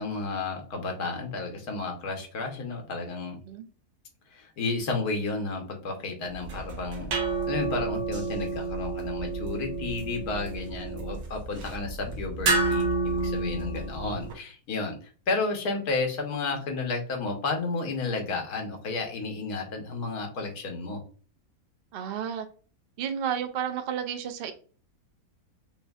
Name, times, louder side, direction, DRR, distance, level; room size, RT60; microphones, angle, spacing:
voice 1, 0.0-3.4 4.3-7.1 7.5-14.9 15.3-21.0, left 3 dB, 80° left, 3 dB, 1.5 m, -32 dB
sound 1, 6.3-14.3, right 3 dB, 80° right, 1.4 m, -30 dB
voice 2, 21.9-22.5 23.0-24.5, right 8 dB, 65° right, 7 dB, 0.5 m, -32 dB
5.9 x 2.6 x 2.3 m, 0.39 s
omnidirectional pair, 1.6 m